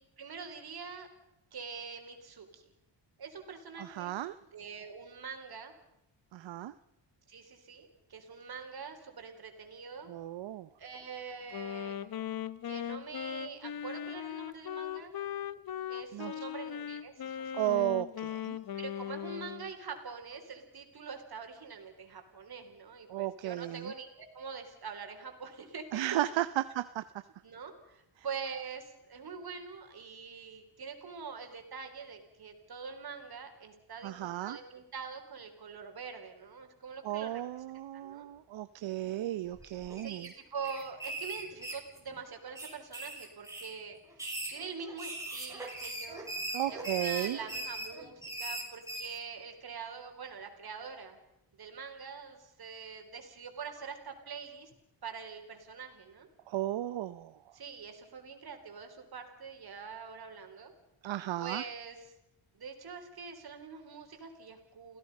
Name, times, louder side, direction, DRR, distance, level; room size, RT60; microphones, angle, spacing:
voice 1, 0.2-1.1 1.5-2.7 3.2-4.1 4.5-5.7 7.3-10.1 10.8-12.0 12.6-15.1 15.9-17.9 18.7-26.2 27.4-37.4 37.9-38.3 39.9-46.3 46.7-51.2 51.6-54.7 55.0-56.3 57.5-60.7 61.4-62.1 62.5-65.0, right 5 dB, 55° right, 5 dB, 4.0 m, -44 dB
voice 2, 3.8-4.3 6.3-6.7 10.1-10.7 16.1-16.3 17.5-18.6 23.1-23.9 25.9-27.1 34.0-34.6 37.0-40.3 46.5-47.4 56.5-57.3 61.0-61.6, right 14 dB, 75° right, 13 dB, 0.8 m, -34 dB
Wind instrument woodwind instrument, 11.5-19.7, left 10 dB, 50° left, 1.0 m, -39 dB
sound 1, 39.5-40.3 40.6-42.2 42.5-43.7 44.1-49.2, right 1 dB, 5° right, 5.7 m, -40 dB
29.5 x 16.5 x 5.4 m, 0.86 s
cardioid pair, 100°, 45 cm